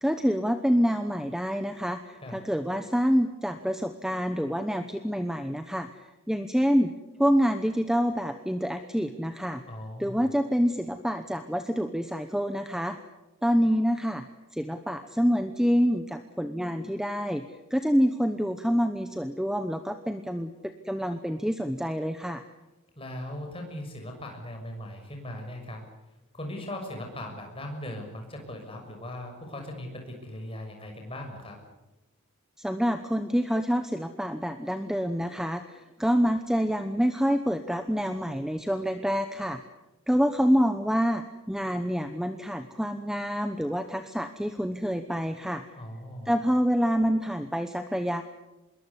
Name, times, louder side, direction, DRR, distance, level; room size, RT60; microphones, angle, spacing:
voice 1, 0.0-5.9 6.3-6.9 7.2-9.6 10.0-13.0 13.4-14.2 14.5-17.4 17.7-22.4 32.6-39.6 40.1-45.6 46.2-48.2, equal, ahead, 8 dB, 0.9 m, -27 dB
voice 2, 9.6-10.3 22.9-25.8 26.3-31.6 45.7-46.3, left 1 dB, 25° left, 3 dB, 6.4 m, -39 dB
26.0 x 22.0 x 8.3 m, 1.0 s
head